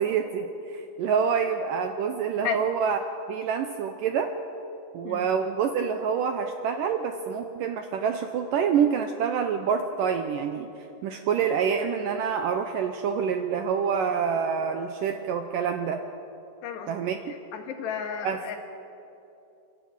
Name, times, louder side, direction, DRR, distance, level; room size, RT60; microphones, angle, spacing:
voice 1, 0.0-3.0 3.3-4.3 4.9-10.7 11.0-16.0 16.9-17.2 18.2-18.4, right 7 dB, 80° right, 6 dB, 2.0 m, -27 dB
voice 2, 17.5-18.6, left 7 dB, 80° left, 4 dB, 3.8 m, -32 dB
29.5 x 12.5 x 8.9 m, 2.9 s
omnidirectional pair, 4.8 m